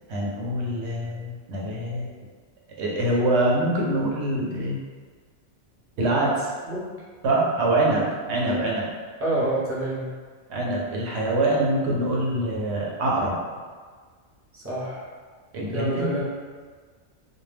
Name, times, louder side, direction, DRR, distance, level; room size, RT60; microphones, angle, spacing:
voice 1, 0.1-2.1 2.8-4.8 6.0-6.5 7.2-8.9 10.5-13.4 15.5-16.1, right 1 dB, 70° right, -3 dB, 0.9 m, -24 dB
voice 2, 9.2-10.1 14.5-15.1 15.7-16.2, right 1 dB, 15° right, -8 dB, 0.5 m, -27 dB
2.2 x 2.2 x 3.2 m, 1.5 s
omnidirectional pair, 1.2 m